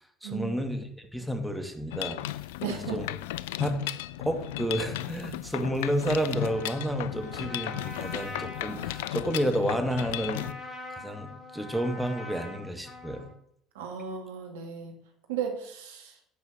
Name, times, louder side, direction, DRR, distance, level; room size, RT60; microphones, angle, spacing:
voice 1, 0.2-2.2 2.6-3.1 3.6-10.5 10.9-13.3, equal, ahead, 4 dB, 2.4 m, -31 dB
Mechanisms, 1.9-10.5, left 15 dB, 80° left, 0.4 m, -35 dB
voice 2, 2.6-3.0 13.7-14.9 15.3-16.2, right 7 dB, 80° right, 3 dB, 2.2 m, -35 dB
Trumpet, 6.2-13.4, left 2 dB, 30° left, 3.4 m, -44 dB
10.5 x 6.3 x 7.5 m, 0.71 s
hypercardioid pair, 60°, 0 cm